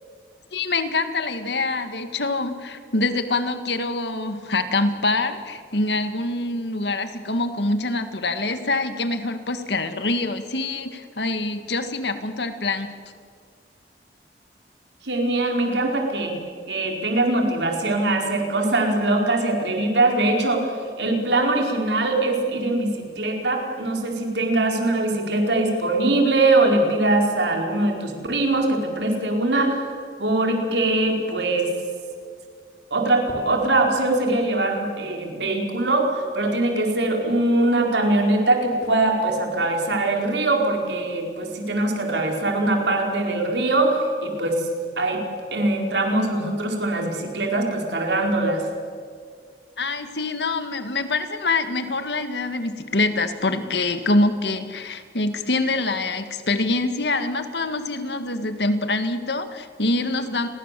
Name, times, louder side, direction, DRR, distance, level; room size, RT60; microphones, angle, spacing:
voice 1, 0.5-12.9 49.8-60.5, left 2 dB, 80° left, 9 dB, 2.0 m, -25 dB
voice 2, 15.0-16.4 16.7-20.7 21.0-29.9 30.2-31.7 32.9-44.7 45.0-45.2 45.5-48.6, right 2 dB, 90° right, 2 dB, 4.8 m, -22 dB
30.0 x 22.5 x 7.7 m, 2.1 s
head